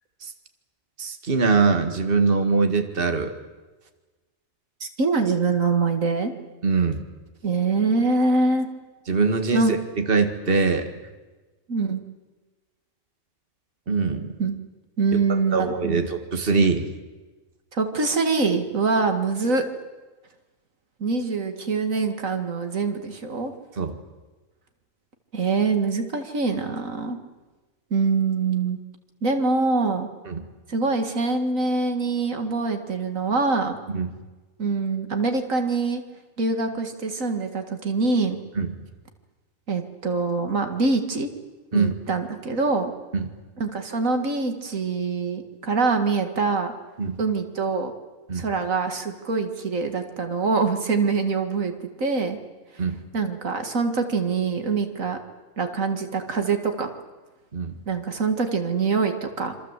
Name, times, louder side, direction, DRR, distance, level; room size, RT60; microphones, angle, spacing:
voice 1, 1.0-3.3 6.6-7.1 9.1-10.9 13.9-14.3 15.5-16.9 23.8-24.0 30.3-30.4 33.9-34.1 38.6-38.7 41.7-41.9 43.1-43.3 47.0-47.2 48.3-48.5 52.8-53.0 57.5-57.7, right 4 dB, 45° right, 6 dB, 2.1 m, -22 dB
voice 2, 4.8-6.3 7.4-8.7 9.5-9.8 11.7-12.0 14.4-14.6 15.0-16.0 17.7-19.7 21.0-23.5 25.3-27.2 27.9-28.8 29.2-30.1 30.7-33.8 34.6-36.0 36.4-38.4 39.7-41.3 41.7-42.9 43.6-46.7 47.2-47.9 48.3-52.4 52.7-52.8 53.1-55.2 55.6-56.9 57.9-59.5, right 4 dB, 80° right, 6 dB, 2.4 m, -24 dB
27.0 x 26.0 x 8.2 m, 1.2 s
omnidirectional pair, 1.4 m